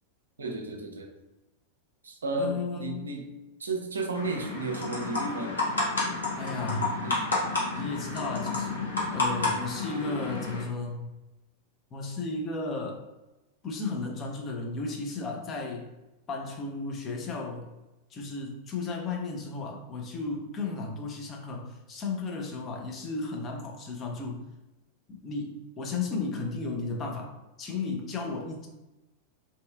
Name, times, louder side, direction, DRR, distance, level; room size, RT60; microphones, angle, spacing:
voice 1, 0.4-1.1 2.0-3.3 3.6-5.6 7.0-7.2, right 3 dB, 70° right, 3 dB, 0.4 m, -33 dB
voice 2, 2.4-3.1 6.4-6.9 7.7-11.1 11.9-13.0 13.6-15.9 16.3-17.7 18.1-24.4 25.1-27.3 27.6-28.7, left 3 dB, 25° left, 1 dB, 0.5 m, -34 dB
sound 1, 4.2-10.6, left 3 dB, 75° left, 0.7 m, -30 dB
2.7 x 2.3 x 2.3 m, 1.0 s
figure-of-eight pair, 90°, 0 cm